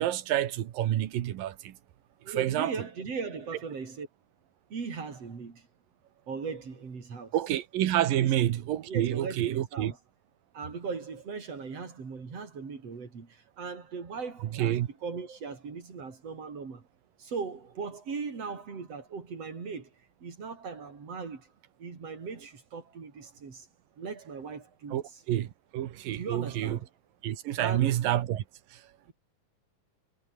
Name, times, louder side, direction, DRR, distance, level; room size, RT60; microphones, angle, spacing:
voice 1, 0.0-1.8 2.3-2.7 7.3-9.9 14.5-14.9 24.9-26.8 27.2-28.4 28.7-28.8, right 12 dB, 85° right, 3.1 m, -28 dB
voice 2, 2.2-4.1 4.7-5.7 6.3-7.3 8.2-8.3 8.8-10.0 10.5-16.8 17.2-19.9 20.2-21.5 21.8-23.7 24.0-25.0 26.1-26.9 27.6-28.0 29.1-29.2, right 5 dB, 45° right, 5.0 m, -38 dB
omnidirectional pair, 3.9 m